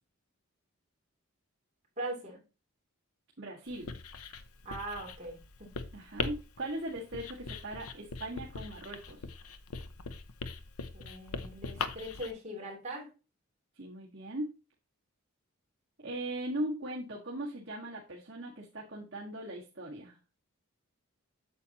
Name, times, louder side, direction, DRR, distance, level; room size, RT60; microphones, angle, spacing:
voice 1, 2.0-2.4 4.6-5.7 10.9-13.1, right 1 dB, 30° right, -1 dB, 3.0 m, -40 dB
voice 2, 3.4-4.0 5.9-9.3 13.8-14.5 16.0-20.2, right 1 dB, 50° right, -5 dB, 1.8 m, -39 dB
Writing, 3.7-12.3, left 4 dB, 85° left, 0.8 m, -41 dB
8.6 x 7.1 x 2.9 m, 0.31 s
head